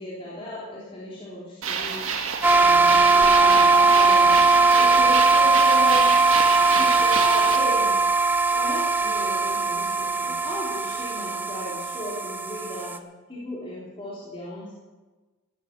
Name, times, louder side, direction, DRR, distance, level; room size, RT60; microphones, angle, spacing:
voice 1, 0.0-2.1 2.5-6.1 6.7-8.0 8.5-12.9 13.3-14.8, left 1 dB, 25° left, -6 dB, 3.3 m, -36 dB
sound 1, 1.6-7.6, right 5 dB, 65° right, 1.9 m, -28 dB
sound 2, 2.4-13.0, right 3 dB, 10° right, 0.6 m, -19 dB
15.0 x 13.0 x 6.7 m, 1.2 s
head